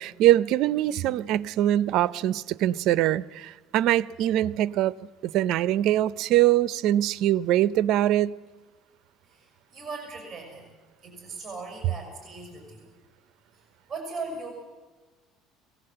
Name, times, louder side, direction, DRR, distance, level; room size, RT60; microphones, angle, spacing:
voice 1, 0.0-4.9 5.2-8.4, right 13 dB, 65° right, 18 dB, 0.6 m, -23 dB
voice 2, 9.2-10.6 11.0-12.9 13.9-14.5, right 3 dB, 15° right, 3 dB, 6.2 m, -38 dB
22.5 x 17.5 x 7.8 m, 1.3 s
cardioid pair, 135°, 0 cm